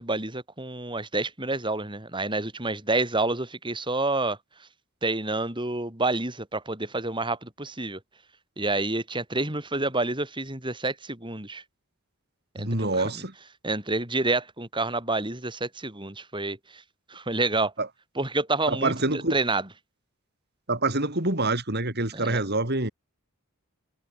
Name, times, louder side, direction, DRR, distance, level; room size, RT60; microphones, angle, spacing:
voice 1, 0.0-4.4 5.0-8.0 8.6-11.6 12.5-13.2 13.6-16.8 17.1-17.7 18.2-19.7 22.1-22.4, right 2 dB, 20° right, 7.3 m, -28 dB
voice 2, 12.6-13.3 17.8-17.9 18.7-19.3 20.7-22.9, right 2 dB, 50° right, 5.3 m, -26 dB
head